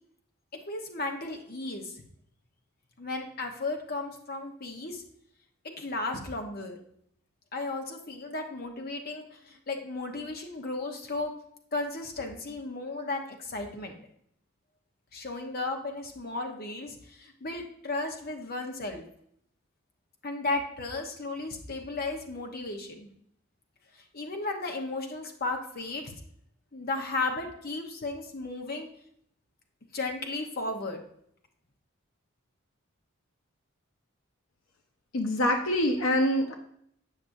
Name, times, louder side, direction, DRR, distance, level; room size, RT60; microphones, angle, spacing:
voice 1, 0.5-2.0 3.0-5.0 5.6-6.8 7.5-11.3 11.7-14.0 15.1-19.0 20.2-23.1 23.9-26.1 26.7-28.9 29.9-31.0, left 2 dB, 45° left, 3 dB, 0.9 m, -34 dB
voice 2, 35.1-36.5, left 1 dB, 75° left, 4 dB, 0.7 m, -25 dB
8.4 x 6.0 x 2.6 m, 0.69 s
head